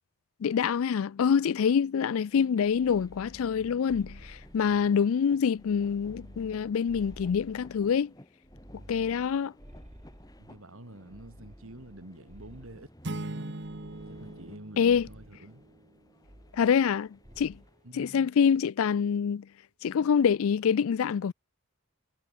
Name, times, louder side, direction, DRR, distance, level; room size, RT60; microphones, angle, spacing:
voice 1, 0.4-8.1 8.9-9.5 14.8-15.1 16.6-17.6 17.9-19.5 19.8-21.3, left 7 dB, 70° left, 0.4 m, -26 dB
sound 1, 1.9-18.2, left 1 dB, 15° left, 2.4 m, -57 dB
sound 2, 2.6-5.1 5.5-8.0 8.4-10.6 11.1-13.0 13.6-14.6 14.9-15.4 16.2-17.0 17.2-17.7, equal, 30° right, 3.5 m, -52 dB
voice 2, 10.4-13.6 14.1-15.6 17.8-18.3, right 1 dB, 70° right, 2.8 m, -48 dB
sound 3, 13.0-15.8, right 2 dB, 50° right, 1.5 m, -40 dB
head